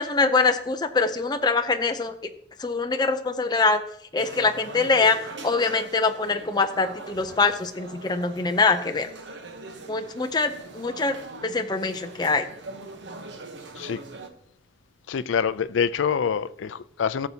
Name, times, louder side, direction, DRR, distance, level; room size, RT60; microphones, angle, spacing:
voice 1, 0.0-2.1 2.6-3.8 4.1-5.2 5.4-9.1 9.9-11.2 11.4-12.5, left 4 dB, 20° left, 0.5 m, -23 dB
sound 1, 4.2-14.3, right 3 dB, 70° right, 0.9 m, -42 dB
voice 2, 15.1-17.3, left 7 dB, 80° left, 0.4 m, -26 dB
15.0 x 6.8 x 2.8 m
head